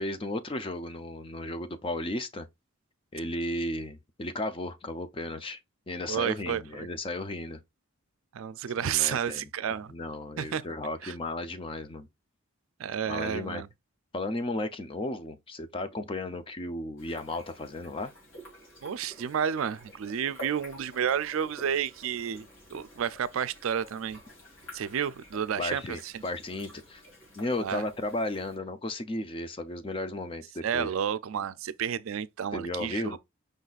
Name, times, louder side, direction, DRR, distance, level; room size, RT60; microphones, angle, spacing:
voice 1, 0.0-2.5 3.1-5.6 5.9-7.6 8.8-9.5 9.9-12.1 13.1-13.6 14.1-18.1 25.6-27.0 27.4-30.9 32.5-33.2, left 2 dB, 25° left, 0.5 m, -34 dB
voice 2, 6.1-6.9 8.3-9.9 10.4-10.7 11.0-11.1 12.8-13.7 18.8-24.2 24.7-26.2 27.6-27.8 30.6-33.2, right 8 dB, 70° right, 0.4 m, -31 dB
sound 1, 17.0-28.6, equal, 60° left, 2.8 m, -50 dB
5.2 x 4.0 x 2.4 m
head